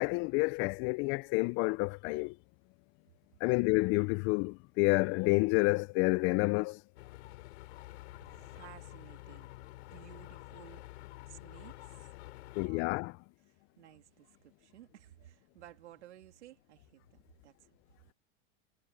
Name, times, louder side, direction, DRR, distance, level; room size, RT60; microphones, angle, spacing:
voice 1, 0.0-2.4 3.4-6.8 12.6-13.2, left 27 dB, 40° left, 0.4 m, -29 dB
sound 1, 7.0-12.7, left 18 dB, 75° left, 6.2 m, -49 dB
voice 2, 8.3-9.5 9.9-10.8 11.3-12.1 12.6-12.9 13.5-17.7, right 13 dB, 90° right, 3.0 m, -56 dB
supercardioid pair, 130°, 33 cm